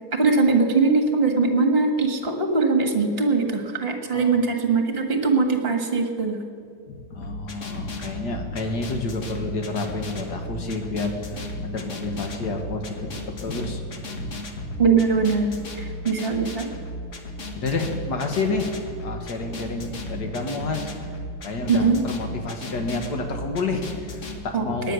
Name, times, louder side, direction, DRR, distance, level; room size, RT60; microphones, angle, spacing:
voice 1, 0.1-6.4 14.8-15.5 15.8-16.7 21.7-22.0 24.5-24.9, right 4 dB, 35° right, 4 dB, 1.7 m, -21 dB
voice 2, 4.1-4.5 6.9-13.1 13.4-14.3 14.7-14.8 17.5-18.7 19.0-20.9 21.4-24.9, left 3 dB, 70° left, 4 dB, 2.0 m, -29 dB
sound 1, 7.2-24.4, left 1 dB, 45° left, 1.6 m, -35 dB
18.5 x 10.0 x 6.3 m, 2.3 s
omnidirectional pair, 1.9 m